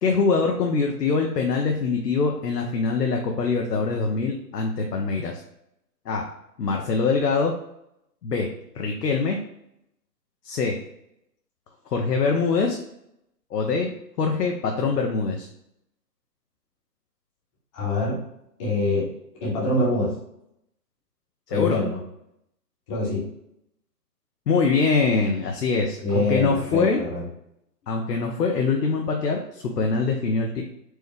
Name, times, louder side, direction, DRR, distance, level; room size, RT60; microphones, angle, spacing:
voice 1, 0.0-5.4 6.1-6.3 6.6-7.5 8.2-8.5 8.7-9.4 10.4-10.8 11.9-12.8 13.5-13.9 14.2-15.5 21.5-21.8 24.5-27.0 27.9-30.6, left 4 dB, 70° left, 2 dB, 0.7 m, -23 dB
voice 2, 17.7-18.2 18.6-19.1 19.4-20.1 21.5-22.0 22.9-23.2 26.0-27.2, left 2 dB, 20° left, -5 dB, 0.9 m, -24 dB
4.5 x 2.1 x 3.3 m, 0.80 s
figure-of-eight pair, 135°, 49 cm